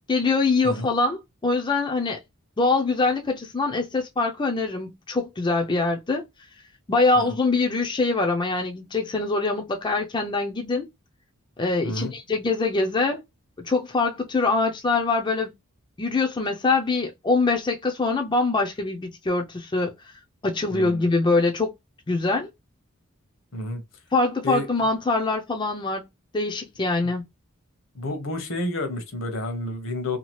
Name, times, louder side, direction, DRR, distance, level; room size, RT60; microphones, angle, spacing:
voice 1, 0.1-2.2 2.6-6.2 6.9-10.9 11.6-13.2 13.6-15.5 16.0-19.9 20.4-21.7 22.1-22.5 24.1-26.1 26.3-27.2, left 3 dB, 20° left, 0.4 m, -24 dB
voice 2, 20.7-21.0 23.5-23.8 24.4-24.7 27.0-27.1 27.9-30.2, left 2 dB, 70° left, 0.9 m, -30 dB
2.8 x 2.4 x 3.0 m
head